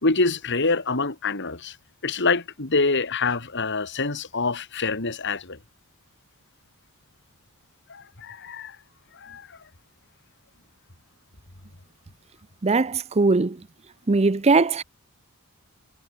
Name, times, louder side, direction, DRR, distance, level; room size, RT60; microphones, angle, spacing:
voice 1, 0.0-1.8 2.0-5.6 7.9-8.8 9.2-9.5, left 3 dB, 55° left, 2.6 m, -25 dB
voice 2, 12.6-13.6 14.1-14.8, right 3 dB, 30° right, 0.6 m, -20 dB
head